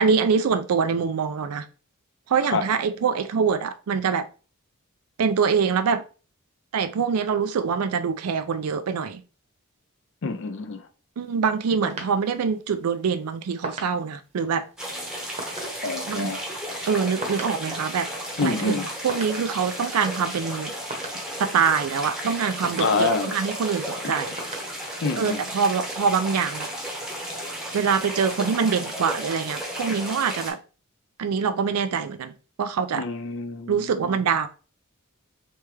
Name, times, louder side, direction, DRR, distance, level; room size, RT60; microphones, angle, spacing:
voice 1, 0.0-1.7 2.3-4.3 5.2-6.0 6.7-9.2 11.2-14.6 16.1-16.3 16.9-18.1 18.4-20.7 21.4-24.4 25.2-26.7 27.7-30.6 31.2-32.3 32.6-33.0 33.7-34.5, right 6 dB, 90° right, 0.4 m, -24 dB
voice 2, 10.2-10.9 15.8-16.4 18.4-18.9 22.8-23.3 24.0-24.1 25.0-25.4 33.0-34.2, left 4 dB, 60° left, 0.5 m, -27 dB
sound 1, 11.2-27.7, right 2 dB, 30° right, 0.8 m, -43 dB
sound 2, 14.8-30.5, equal, 5° right, 0.8 m, -34 dB
3.3 x 3.3 x 3.2 m
head